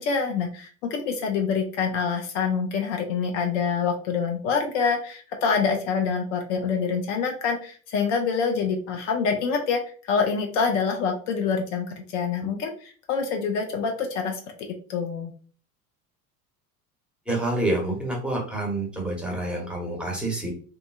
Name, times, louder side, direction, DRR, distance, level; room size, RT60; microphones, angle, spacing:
voice 1, 0.0-15.3, left 5 dB, 55° left, 4 dB, 0.6 m, -26 dB
voice 2, 17.3-20.5, right 1 dB, ahead, -1 dB, 0.9 m, -27 dB
2.7 x 2.6 x 2.2 m, 0.41 s
figure-of-eight pair, 70°, 44 cm